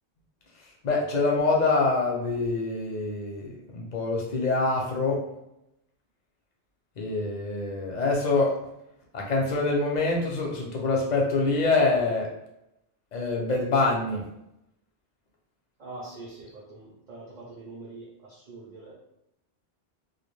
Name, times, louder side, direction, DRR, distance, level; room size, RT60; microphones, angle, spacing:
voice 1, 0.8-5.2 7.0-8.5 9.1-12.3 13.1-14.3, left 3 dB, 55° left, -1 dB, 0.5 m, -25 dB
voice 2, 15.8-18.9, right 2 dB, 50° right, -5 dB, 0.6 m, -43 dB
2.3 x 2.1 x 3.1 m, 0.85 s
omnidirectional pair, 1.1 m